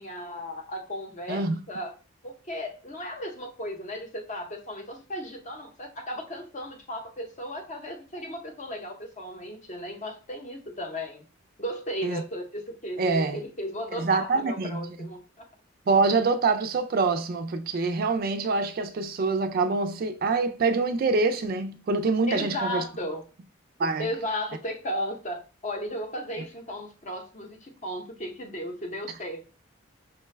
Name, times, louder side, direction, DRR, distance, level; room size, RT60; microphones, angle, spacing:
voice 1, 0.0-1.9 2.2-11.2 11.6-15.2 22.3-23.2 24.0-29.5, equal, 35° left, 0.7 m, -35 dB
voice 2, 13.0-13.4 14.0-14.8 15.9-22.8 23.8-24.1, right 4 dB, 45° right, 0.3 m, -25 dB
5.6 x 2.2 x 3.2 m
head